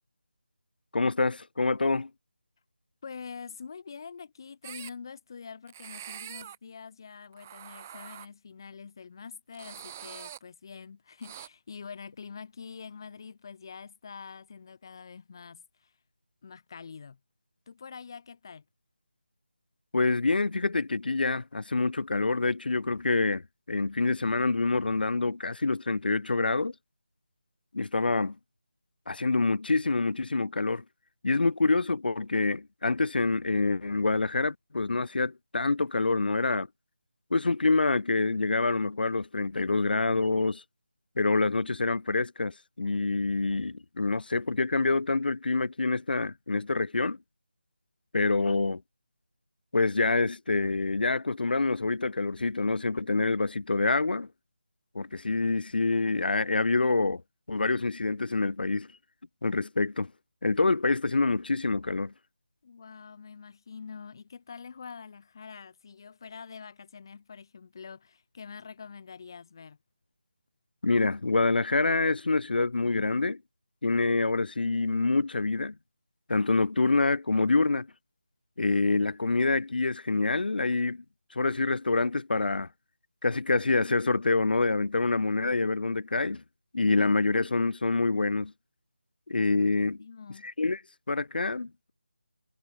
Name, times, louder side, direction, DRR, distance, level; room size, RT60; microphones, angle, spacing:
voice 1, 0.9-2.1 19.9-26.7 27.7-28.4 29.1-30.8 31.2-36.7 37.3-40.6 41.2-47.2 48.1-48.8 49.7-54.3 54.9-57.2 57.5-58.9 59.4-60.1 60.4-62.1 70.8-73.4 73.8-75.8 76.3-77.9 78.6-81.0 81.3-82.7 83.2-86.4 86.7-88.5 89.3-90.0 90.4-90.8 91.1-91.9, left 3 dB, 70° left, 0.5 m, -26 dB
voice 2, 3.0-15.9 16.4-17.2 17.7-18.6 62.6-69.8 90.0-90.5, left 5 dB, 25° left, 2.5 m, -45 dB
sound 1, 4.6-4.9 5.7-6.6 7.3-8.3 9.5-10.4 11.2-11.5, right 10 dB, 15° right, 1.0 m, -44 dB
figure-of-eight pair, 175°, 5 cm